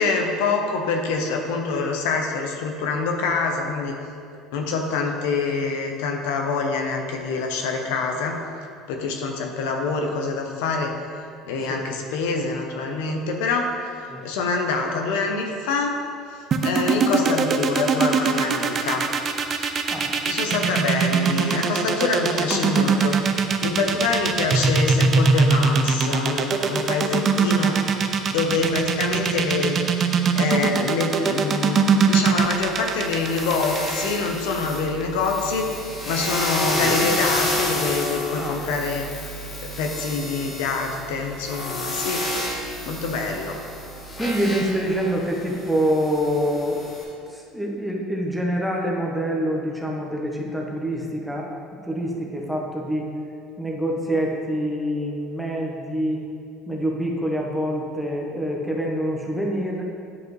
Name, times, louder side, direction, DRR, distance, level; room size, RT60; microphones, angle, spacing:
voice 1, 0.0-4.0 4.5-8.4 8.9-10.9 11.4-16.0 16.3-19.1 19.5-19.7 20.3-23.2 23.6-29.8 30.4-39.1 39.6-42.2 42.9-43.6, left 4 dB, 90° left, 3 dB, 0.8 m, -25 dB
sound 1, 16.5-34.6, right 5 dB, 35° right, 0.5 m, -21 dB
sound 2, 32.4-47.0, left 1 dB, 30° left, 1.5 m, -30 dB
voice 2, 44.2-46.8 47.3-51.5 51.8-53.1 53.6-56.2 56.7-59.8, equal, ahead, -2 dB, 1.0 m, -26 dB
9.7 x 4.8 x 3.2 m, 2.4 s
supercardioid pair, 120°, 0 cm